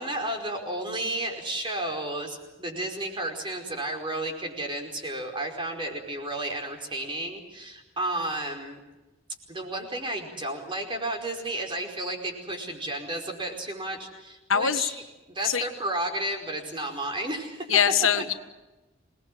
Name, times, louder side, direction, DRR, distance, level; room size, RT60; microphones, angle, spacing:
voice 1, 0.0-8.8 9.5-15.0 15.3-17.7, right 1 dB, 25° right, 3 dB, 4.9 m, -32 dB
voice 2, 14.5-14.8 15.4-15.6 17.7-18.3, left 8 dB, 85° left, 9 dB, 1.5 m, -22 dB
27.0 x 20.0 x 7.7 m, 1.1 s
head